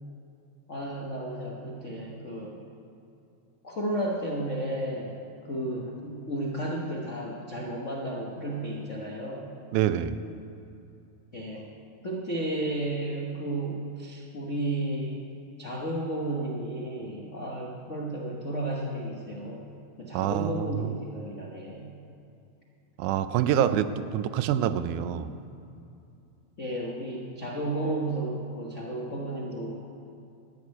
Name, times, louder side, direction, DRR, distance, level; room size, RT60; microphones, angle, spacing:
voice 1, 0.7-2.6 3.6-5.1 5.4-9.5 11.3-11.6 12.0-15.3 15.6-19.6 20.0-21.9 23.7-24.0 26.6-29.9, right 1 dB, 85° left, -3 dB, 0.6 m, -33 dB
voice 2, 9.7-10.2 20.1-20.9 23.0-25.3, right 10 dB, 85° right, 12 dB, 2.0 m, -26 dB
13.0 x 6.4 x 9.6 m, 2.7 s
omnidirectional pair, 3.5 m